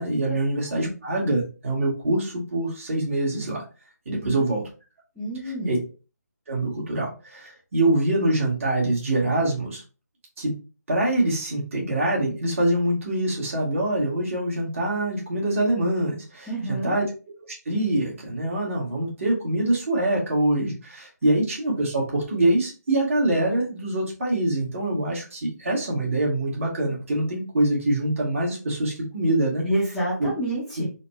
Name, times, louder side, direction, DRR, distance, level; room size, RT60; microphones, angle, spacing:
voice 1, 0.0-3.6 4.0-4.6 5.6-5.8 6.5-9.8 10.4-10.5 10.9-17.1 17.6-29.6 30.2-30.3, right 1 dB, 45° right, -3 dB, 1.7 m, -24 dB
voice 2, 4.1-4.4 5.2-5.8 16.5-17.0 29.6-30.9, right 1 dB, ahead, -11 dB, 0.8 m, -29 dB
4.1 x 2.2 x 3.1 m, 0.34 s
figure-of-eight pair, 155°, 10 cm